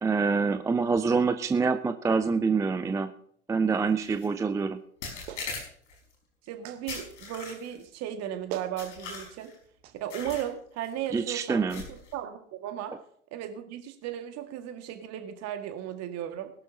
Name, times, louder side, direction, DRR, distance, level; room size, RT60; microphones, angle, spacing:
voice 1, 0.0-3.1 3.5-4.8 11.1-11.8, right 4 dB, 10° right, 11 dB, 0.5 m, -26 dB
sound 1, 4.0-4.3 5.0-6.0 6.9-7.8 8.8-9.6 10.1-10.5 10.8-11.1 11.7-12.1, left 4 dB, 70° left, 5.1 m, -40 dB
Clapping, 5.3-5.5 6.6-6.8 8.1-8.2 8.5-8.8 9.8-10.0, right 10 dB, 60° right, 1.5 m, -39 dB
voice 2, 6.5-9.5 10.0-12.9 13.3-16.5, right 10 dB, 45° right, 6 dB, 2.1 m, -36 dB
21.0 x 12.0 x 2.9 m, 0.63 s
figure-of-eight pair, 80°, 37 cm